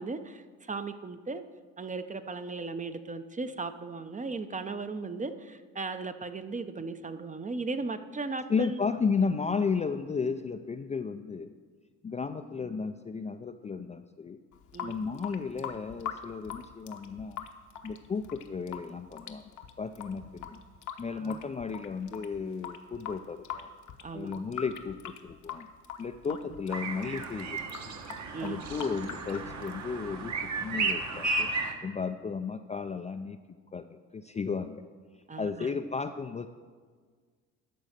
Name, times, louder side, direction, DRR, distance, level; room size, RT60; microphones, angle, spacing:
voice 1, 0.0-1.4 1.8-8.8 14.7-15.0 21.1-21.5 24.0-24.4 26.3-26.4 28.3-28.7 35.3-35.7, right 3 dB, 20° right, 10 dB, 0.7 m, -37 dB
voice 2, 8.5-11.5 12.0-14.4 14.8-17.5 17.8-19.5 19.8-20.6 21.0-23.7 24.1-25.7 26.0-28.0 28.4-31.5 31.8-33.4 33.7-34.8 35.4-36.5, left 5 dB, 20° left, 7 dB, 0.4 m, -34 dB
Water tap faucet / Sink (filling or washing) / Drip, 14.5-30.5, left 8 dB, 55° left, 0.9 m, -43 dB
sound 1, 26.7-31.7, right 3 dB, 50° right, 1.3 m, -34 dB
12.0 x 4.1 x 6.5 m, 1.5 s
supercardioid pair, 70°, 36 cm